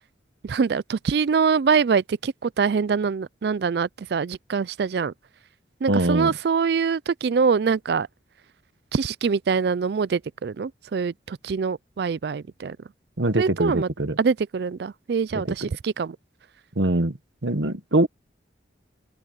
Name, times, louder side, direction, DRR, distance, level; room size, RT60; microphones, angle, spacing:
voice 1, 0.4-5.1 5.8-8.1 8.9-12.8 13.4-13.9 14.2-16.2, right 5 dB, 60° right, 0.4 m, -24 dB
voice 2, 5.9-6.3 13.2-14.2 15.3-15.7 16.8-17.2 17.4-18.1, right 1 dB, 80° right, 1.5 m, -23 dB
open air
head